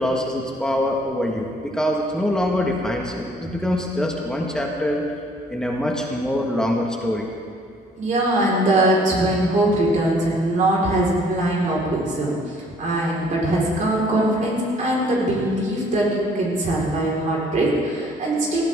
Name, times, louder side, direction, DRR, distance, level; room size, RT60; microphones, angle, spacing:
voice 1, 0.0-5.1 5.5-7.3, left 1 dB, 5° left, -1 dB, 1.6 m, -24 dB
voice 2, 8.0-18.6, right 1 dB, 45° right, -5 dB, 4.5 m, -21 dB
18.5 x 14.5 x 3.7 m, 2.3 s
cardioid pair, 110°, 17 cm